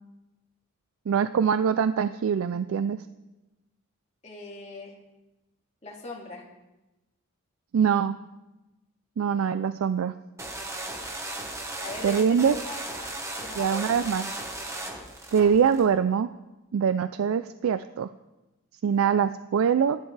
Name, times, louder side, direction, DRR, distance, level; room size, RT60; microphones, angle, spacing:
voice 1, 1.1-3.0 7.7-8.1 9.2-10.1 12.0-12.6 13.6-14.3 15.3-16.3 16.7-18.1 18.8-20.0, right 7 dB, 75° right, 12 dB, 0.3 m, -23 dB
voice 2, 4.2-5.0 5.8-6.4 11.8-13.1 13.4-13.9, left 2 dB, 30° left, -1 dB, 2.2 m, -40 dB
sound 1, 10.4-15.8, right 1 dB, 15° right, 1.2 m, -36 dB
17.0 x 11.5 x 3.3 m, 1.0 s
head